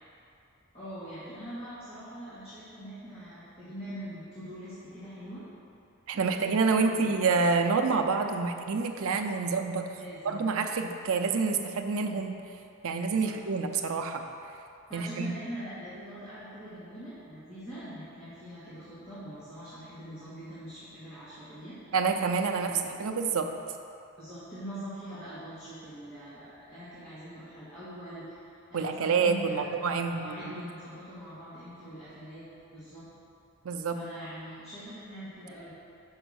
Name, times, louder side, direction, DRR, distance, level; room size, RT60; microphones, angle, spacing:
voice 1, 0.7-5.4 6.1-7.1 10.0-10.4 13.2-13.4 14.9-21.8 22.6-22.9 24.2-29.7 30.1-33.1 33.9-35.7, equal, 25° left, -12 dB, 1.5 m, -43 dB
voice 2, 6.1-9.9 10.2-12.4 12.8-14.2 14.9-15.3 21.9-23.5 28.7-30.6 33.6-34.0, right 4 dB, 70° right, 5 dB, 0.5 m, -28 dB
5.6 x 5.0 x 6.3 m, 2.6 s
head